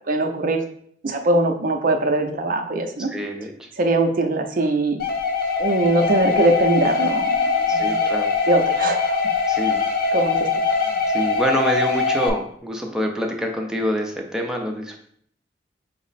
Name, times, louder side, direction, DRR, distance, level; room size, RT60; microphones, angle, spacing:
voice 1, 0.1-0.6 1.0-3.1 3.8-5.0 5.6-8.0 8.5-9.2 10.1-10.5, right 2 dB, 50° right, 5 dB, 0.5 m, -21 dB
voice 2, 3.0-3.7 7.7-8.3 9.5-9.9 10.9-15.0, equal, 5° right, 1 dB, 0.5 m, -26 dB
sound 1, 5.0-12.3, left 4 dB, 55° left, 0.6 m, -22 dB
5.3 x 2.0 x 4.0 m, 0.64 s
head